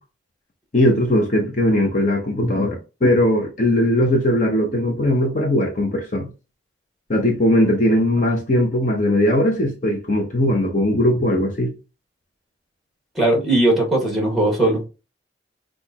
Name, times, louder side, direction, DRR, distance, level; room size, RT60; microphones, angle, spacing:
voice 1, 0.7-6.3 7.1-11.7, left 1 dB, 45° left, 0.8 m, -19 dB
voice 2, 13.1-14.8, right 1 dB, ahead, 1.7 m, -18 dB
6.1 x 2.5 x 2.9 m
head